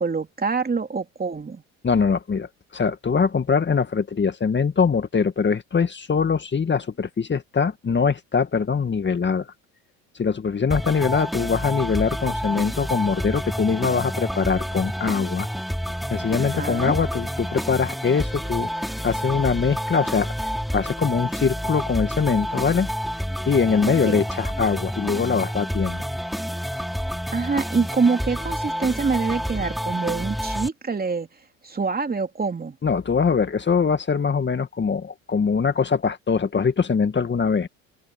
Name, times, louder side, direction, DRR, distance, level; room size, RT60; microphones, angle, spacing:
voice 1, 0.0-1.6 16.4-16.9 23.9-24.2 27.3-31.3 31.6-32.8, right 4 dB, 25° right, 3.2 m, -25 dB
voice 2, 1.8-9.5 10.2-15.5 16.1-20.3 20.7-22.9 23.5-26.0 32.8-37.7, left 5 dB, 30° left, 2.0 m, -22 dB
sound 1, 10.7-30.7, equal, ahead, 5.3 m, -29 dB
open air
hypercardioid pair, 70°, 39 cm